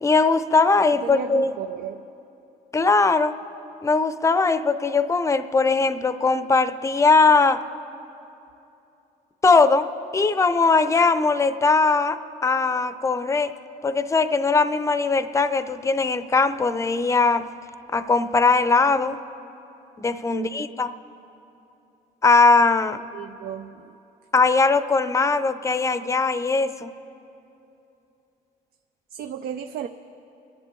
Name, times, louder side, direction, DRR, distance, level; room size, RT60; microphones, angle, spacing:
voice 1, 0.0-1.5 2.7-3.3 3.8-7.6 9.4-13.5 13.8-17.5 17.9-19.2 20.0-20.9 22.2-23.0 24.3-26.9, left 4 dB, 20° left, 12 dB, 0.6 m, -20 dB
voice 2, 0.9-2.1 20.3-20.8 23.1-24.0 29.1-29.9, right 8 dB, 65° right, 8 dB, 0.5 m, -34 dB
30.0 x 10.5 x 3.8 m, 2.9 s
cardioid pair, 110°, 17 cm